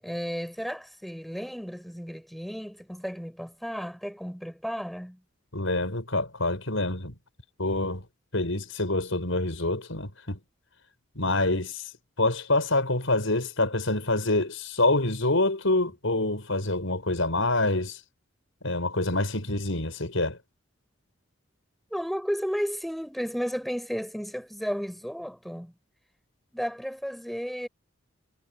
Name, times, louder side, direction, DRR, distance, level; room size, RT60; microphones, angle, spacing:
voice 1, 0.0-5.2 21.9-25.7 26.5-27.7, equal, ahead, 7.7 m, -33 dB
voice 2, 5.5-7.2 7.6-8.0 8.3-10.4 11.2-11.9 12.2-18.0 18.6-20.4, left 2 dB, 75° left, 5.5 m, -26 dB
head